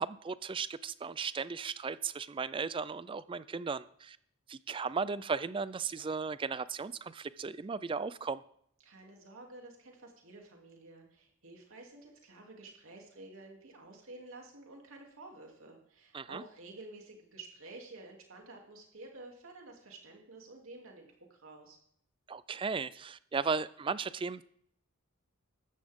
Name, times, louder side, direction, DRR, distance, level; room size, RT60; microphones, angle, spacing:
voice 1, 0.0-4.2 4.5-8.4 16.1-16.4 22.3-24.4, right 5 dB, 25° right, 17 dB, 0.3 m, -36 dB
voice 2, 8.8-21.8, right 2 dB, 75° right, 1 dB, 2.8 m, -51 dB
14.0 x 11.5 x 3.6 m, 0.68 s
head